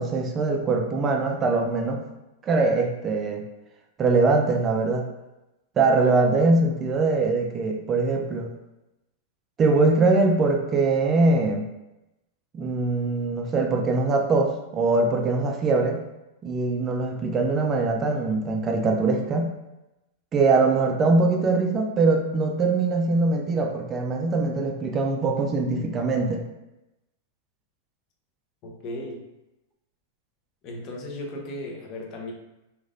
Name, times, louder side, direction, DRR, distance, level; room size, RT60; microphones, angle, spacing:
voice 1, 0.0-2.0 2.4-3.5 4.0-5.1 5.8-8.5 9.6-11.7 12.5-16.0 16.4-19.6 20.3-26.4, right 3 dB, 25° right, 2 dB, 0.4 m, -22 dB
voice 2, 28.6-29.3 30.6-32.3, left 1 dB, 40° left, 0 dB, 0.7 m, -36 dB
3.1 x 2.4 x 2.5 m, 0.95 s
hypercardioid pair, 115°, 0 cm